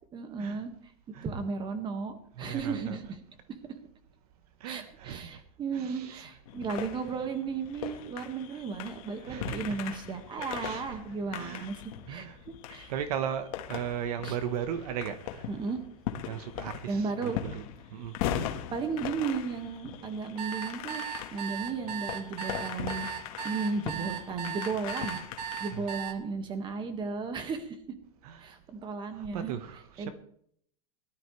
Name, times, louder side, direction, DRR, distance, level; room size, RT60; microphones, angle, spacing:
voice 1, 0.1-0.7 1.2-3.2 4.6-11.8 12.1-12.9 14.2-14.4 15.5-15.8 16.9-17.4 18.7-21.0 21.3-23.1 23.4-27.8 28.4-29.5 30.0-30.1, right 4 dB, 25° right, 1.8 m, -34 dB
voice 2, 2.4-3.0 4.6-5.4 5.7-6.3 8.5-8.6 9.2-10.0 10.4-11.0 11.4-11.7 12.1-12.4 12.9-15.5 16.3-17.6 17.9-18.1 25.7-25.8 28.2-28.6 29.1-30.1, right 9 dB, 70° right, 1.2 m, -37 dB
sound 1, 6.5-26.1, left 10 dB, 60° left, 1.6 m, -40 dB
sound 2, 20.4-26.1, right 10 dB, 85° right, 1.5 m, -37 dB
19.0 x 12.5 x 3.3 m
supercardioid pair, 145°, 20 cm